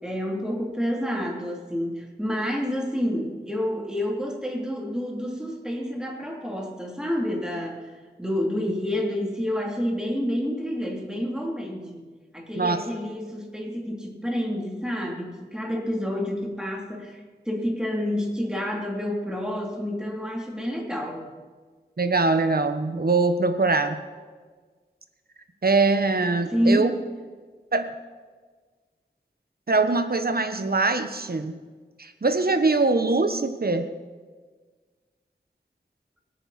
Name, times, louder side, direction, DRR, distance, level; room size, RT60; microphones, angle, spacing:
voice 1, 0.0-7.8 8.2-12.0 12.3-17.2 17.4-21.2 26.5-26.9, equal, 5° right, -1 dB, 3.3 m, -28 dB
voice 2, 22.0-24.0 25.6-26.9 27.7-27.9 29.7-31.5 32.0-33.9, right 3 dB, 60° right, 8 dB, 1.3 m, -22 dB
24.0 x 9.0 x 4.3 m, 1.4 s
wide cardioid pair, 50°, 17 cm